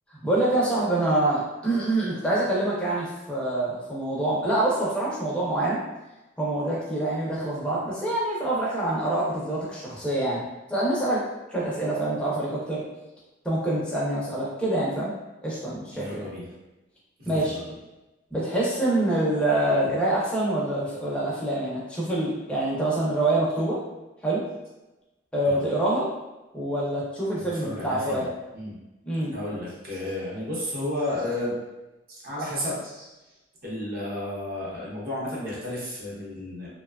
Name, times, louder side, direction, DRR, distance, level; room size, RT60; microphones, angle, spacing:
voice 1, 0.2-5.8 6.4-10.4 10.7-11.2 11.5-12.8 13.4-15.1 15.4-16.3 17.3-17.6 18.3-23.8 24.2-24.4 25.3-26.1 26.5-28.3 29.1-29.3, right 1 dB, 5° left, -6 dB, 0.5 m, -26 dB
voice 2, 15.9-16.6 17.2-17.8 25.4-25.6 27.4-28.3 28.5-28.8 29.3-31.5 32.1-33.2 33.6-36.7, left 1 dB, 50° right, -6 dB, 0.8 m, -32 dB
2.6 x 2.2 x 2.3 m, 1.0 s
head